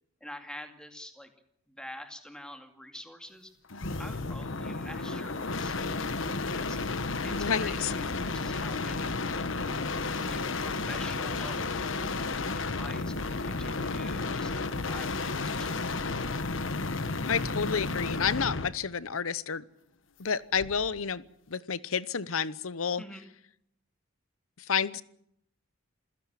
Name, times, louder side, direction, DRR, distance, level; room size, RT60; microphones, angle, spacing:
voice 1, 0.2-1.3 1.7-3.5 4.0-6.8 7.2-9.5 10.2-14.6 14.9-16.4 23.0-23.2, left 1 dB, 5° left, 5 dB, 2.3 m, -47 dB
sound 1, 3.7-18.8 20.5-21.0, left 3 dB, 65° left, 1.2 m, -32 dB
voice 2, 7.3-7.9 17.3-19.6 20.2-23.0 24.6-25.0, left 6 dB, 80° left, 18 dB, 0.9 m, -30 dB
28.0 x 16.0 x 7.5 m, 0.75 s
head